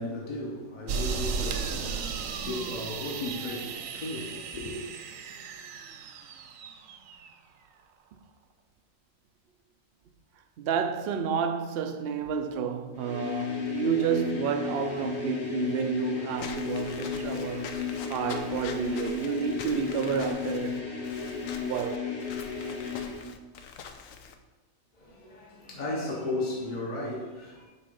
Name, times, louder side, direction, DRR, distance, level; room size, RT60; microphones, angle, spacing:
voice 1, 0.0-4.8 24.9-27.6, left 2 dB, 35° left, 1.0 m, -35 dB
sound 1, 0.9-7.3, right 6 dB, 75° right, 1.0 m, -35 dB
voice 2, 10.6-20.8 21.6-22.1, right 7 dB, 60° right, 0.7 m, -30 dB
sound 2, 12.9-23.3, left 6 dB, 55° left, 1.4 m, -34 dB
Walk footsteps / Squeak, 16.4-24.3, left 6 dB, 80° left, 1.0 m, -44 dB
8.2 x 3.1 x 5.3 m
omnidirectional pair, 1.4 m